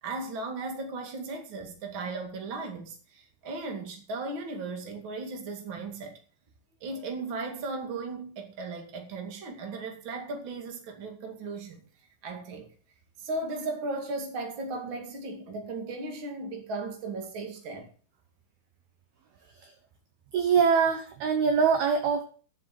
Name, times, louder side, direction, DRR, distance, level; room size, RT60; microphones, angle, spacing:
voice 1, 0.0-6.1 6.8-11.8 12.2-12.7 13.2-17.9, right 3 dB, 40° right, 2.0 m, -36 dB
voice 2, 20.3-22.2, right 6 dB, 70° right, 2.4 m, -23 dB
9.7 x 7.4 x 7.6 m
omnidirectional pair, 5.5 m